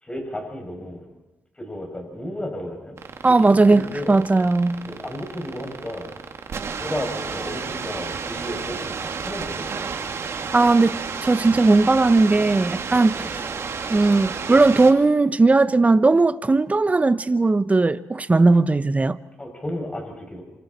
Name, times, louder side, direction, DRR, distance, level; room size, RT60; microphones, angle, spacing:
voice 1, 0.0-1.0 1.6-3.0 3.4-4.2 4.9-6.1 6.8-9.9 13.1-13.3 19.4-20.4, left 1 dB, 20° left, 7.2 m, -33 dB
sound 1, 3.0-14.9, right 5 dB, 60° right, 2.3 m, -31 dB
voice 2, 3.2-4.8 10.5-13.4 13.9-19.2, right 3 dB, 25° right, 1.0 m, -18 dB
27.0 x 26.5 x 4.4 m
cardioid pair, 65°, 5 cm